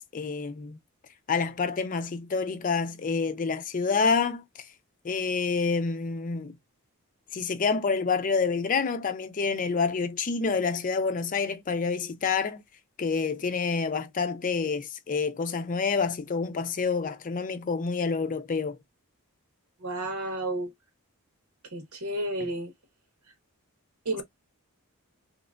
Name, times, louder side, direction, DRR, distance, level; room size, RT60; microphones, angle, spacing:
voice 1, 0.1-0.8 1.3-4.4 5.0-6.5 7.3-12.6 13.0-18.8 22.4-22.5, left 5 dB, 35° left, 0.4 m, -28 dB
voice 2, 19.8-20.7 21.7-22.7 24.0-24.2, right 1 dB, 85° right, 1.4 m, -31 dB
3.3 x 2.8 x 2.4 m
head